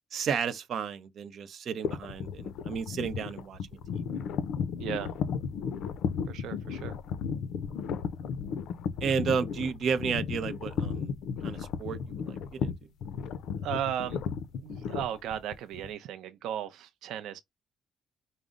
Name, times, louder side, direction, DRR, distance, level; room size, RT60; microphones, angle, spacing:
voice 1, 0.1-3.8 9.0-11.1 11.4-12.7, right 6 dB, 50° right, 0.7 m, -32 dB
sound 1, 1.8-15.9, left 6 dB, 75° left, 0.5 m, -34 dB
voice 2, 4.8-5.1 6.3-7.0 13.6-14.2 14.6-17.4, right 10 dB, 85° right, 0.5 m, -35 dB
5.1 x 2.0 x 3.6 m
cardioid pair, 170°, 0 cm